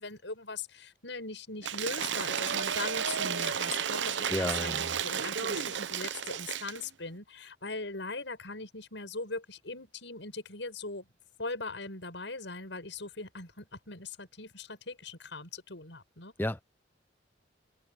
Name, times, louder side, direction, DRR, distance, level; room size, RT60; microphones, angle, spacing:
voice 1, 0.0-11.1 11.4-16.3, left 3 dB, 75° left, 6.5 m, -40 dB
Cheering / Applause / Crowd, 1.6-6.8, right 8 dB, 75° right, 0.7 m, -32 dB
voice 2, 4.3-4.9 16.4-16.6, left 1 dB, 10° left, 0.6 m, -32 dB
head